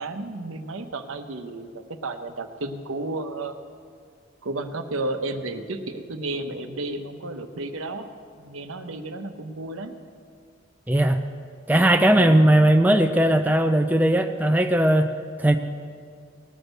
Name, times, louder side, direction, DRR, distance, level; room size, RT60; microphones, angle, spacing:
voice 1, 0.0-1.7 2.0-3.6 4.4-8.1 8.4-9.9, right 2 dB, 80° right, 7 dB, 0.9 m, -32 dB
voice 2, 10.9-11.2 11.7-15.1 15.4-15.6, right 1 dB, 10° right, 6 dB, 0.4 m, -18 dB
18.5 x 6.3 x 6.6 m, 2.1 s
head